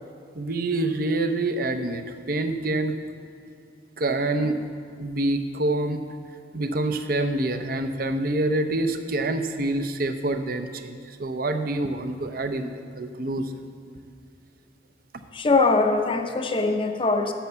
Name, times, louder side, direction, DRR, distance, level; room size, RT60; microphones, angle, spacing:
voice 1, 0.3-2.9 4.0-4.6 5.0-6.0 6.5-13.5, right 2 dB, 55° right, 8 dB, 0.7 m, -26 dB
voice 2, 15.3-17.3, left 3 dB, 30° left, 5 dB, 0.6 m, -22 dB
10.0 x 7.2 x 6.9 m, 2.4 s
head